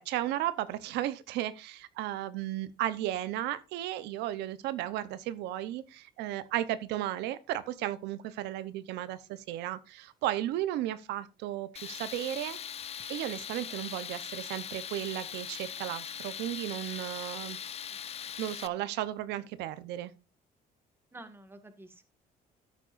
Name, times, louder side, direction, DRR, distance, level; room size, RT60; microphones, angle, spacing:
voice 1, 0.0-12.6 13.1-17.6 18.4-20.1, right 13 dB, 85° right, 0.9 m, -34 dB
Tools, 11.8-18.7, left 8 dB, 40° left, 0.5 m, -41 dB
voice 2, 21.1-22.0, right 2 dB, 15° right, 1.8 m, -50 dB
13.5 x 8.5 x 2.6 m
cardioid pair, 110°, 17 cm